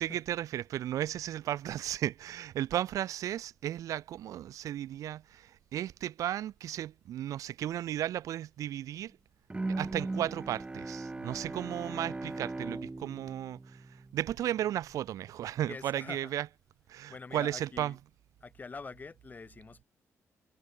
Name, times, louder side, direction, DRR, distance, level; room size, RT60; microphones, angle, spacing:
voice 1, 0.0-9.1 9.8-13.8 14.1-16.5 16.9-17.9, right 12 dB, 85° right, 1.0 m, -34 dB
Bowed string instrument, 9.5-14.6, right 2 dB, 20° right, 2.1 m, -39 dB
voice 2, 15.7-16.3 16.9-18.0 18.4-19.8, left 4 dB, 30° left, 4.5 m, -46 dB
cardioid pair, 105°, 6 cm